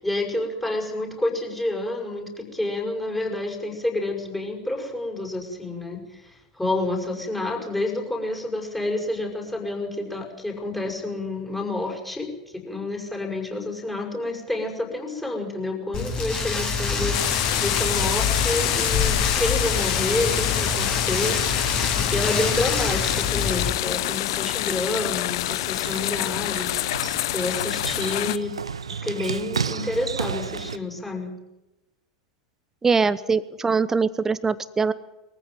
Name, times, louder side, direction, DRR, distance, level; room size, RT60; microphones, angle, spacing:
voice 1, 0.0-21.8 22.1-28.5 29.0-31.3, left 2 dB, 5° left, 0 dB, 6.2 m, -29 dB
Rain, 15.9-23.7, left 5 dB, 30° left, 6.3 m, -26 dB
sound 1, 17.1-28.4, left 16 dB, 55° left, 0.7 m, -27 dB
sound 2, 25.2-30.8, right 6 dB, 80° right, 0.8 m, -33 dB
voice 2, 32.8-34.9, right 5 dB, 15° right, 16 dB, 1.0 m, -22 dB
22.5 x 15.0 x 9.3 m, 1.0 s
figure-of-eight pair, 90°, 3 cm